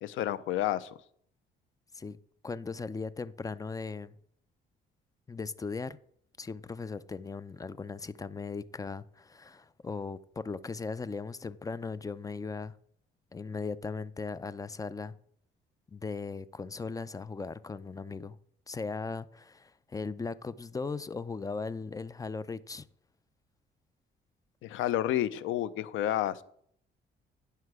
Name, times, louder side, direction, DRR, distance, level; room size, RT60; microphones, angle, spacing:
voice 1, 0.0-1.0 24.6-26.4, left 12 dB, 85° left, 0.5 m, -30 dB
voice 2, 2.4-4.2 5.3-6.0 6.4-12.7 13.3-15.2 15.9-18.4 18.7-22.9, left 4 dB, 15° left, 0.4 m, -38 dB
9.7 x 5.7 x 4.7 m
cardioid pair, 90°, 20 cm